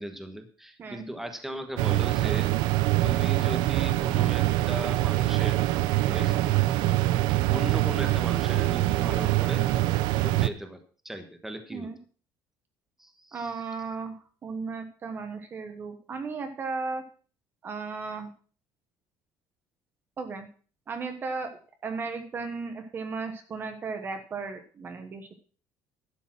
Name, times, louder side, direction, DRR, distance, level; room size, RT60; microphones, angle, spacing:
voice 1, 0.0-2.5 3.0-5.6 6.1-6.4 7.5-9.7 10.2-10.8 11.0-11.9 13.0-13.5, right 1 dB, 5° right, 6 dB, 1.3 m, -37 dB
sound 1, 1.8-10.5, right 16 dB, 75° right, 0.6 m, -24 dB
voice 2, 13.3-17.0 17.6-18.3 20.2-20.5 20.9-25.3, right 4 dB, 30° right, 7 dB, 1.2 m, -35 dB
12.0 x 7.0 x 6.1 m, 0.41 s
cardioid pair, 165°, 8 cm